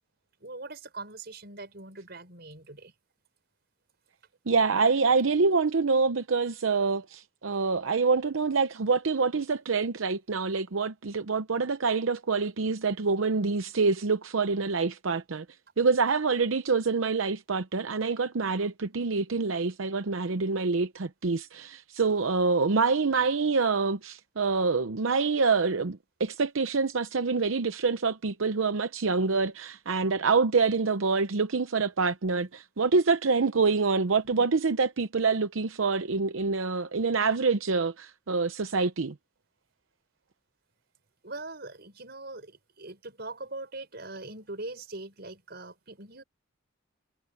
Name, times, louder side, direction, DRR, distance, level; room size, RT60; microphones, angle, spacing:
voice 1, 0.4-2.9 23.1-23.4 34.2-34.5 41.2-46.2, right 2 dB, 55° right, 6.0 m, -42 dB
voice 2, 4.5-15.4 15.8-39.1, right 4 dB, 85° right, 0.7 m, -26 dB
head